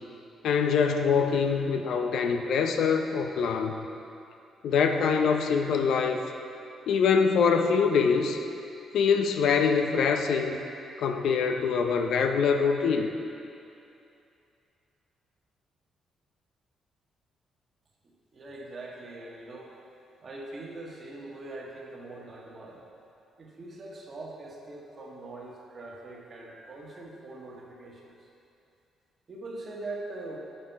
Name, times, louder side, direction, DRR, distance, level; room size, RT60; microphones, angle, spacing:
voice 1, 0.4-3.8 4.6-6.2 6.9-8.4 8.9-10.6 11.0-13.1, left 6 dB, 75° left, 5 dB, 0.5 m, -24 dB
voice 2, 18.0-19.7 20.2-22.8 23.4-28.2 29.3-30.4, right 2 dB, 40° right, -2 dB, 1.4 m, -42 dB
8.7 x 5.7 x 4.5 m, 2.7 s
cardioid pair, 90°, 0 cm